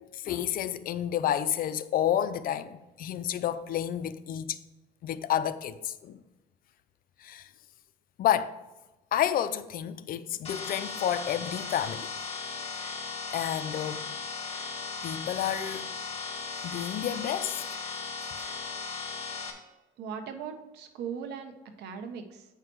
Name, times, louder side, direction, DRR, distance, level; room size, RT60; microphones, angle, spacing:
voice 1, 0.0-4.6 5.0-6.2 7.2-7.5 8.2-8.6 9.1-12.1 13.3-14.1 15.0-15.9 16.6-17.8, left 10 dB, 60° left, 0.6 m, -30 dB
sound 1, 10.4-19.5, left 4 dB, 35° left, 1.9 m, -37 dB
voice 2, 20.0-21.5 21.8-22.5, right 7 dB, 80° right, 1.2 m, -38 dB
8.7 x 5.8 x 4.6 m
cardioid pair, 110°, 17 cm